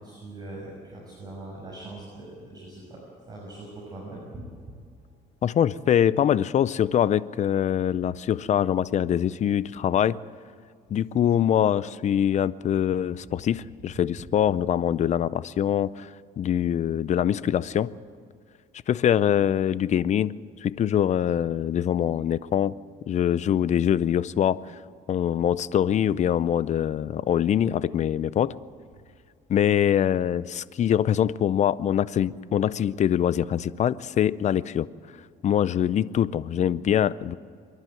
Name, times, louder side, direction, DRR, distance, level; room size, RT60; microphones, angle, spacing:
voice 1, 0.0-3.0 3.3-4.7, right 2 dB, 25° right, -5 dB, 6.4 m, -41 dB
voice 2, 5.4-10.2 10.9-16.1 16.4-17.9 18.9-20.3 20.6-22.7 23.1-24.6 25.1-28.5 29.5-34.9 35.4-37.4, left 9 dB, 45° left, 18 dB, 0.6 m, -23 dB
26.0 x 11.5 x 9.2 m, 2.1 s
cardioid pair, 110°, 17 cm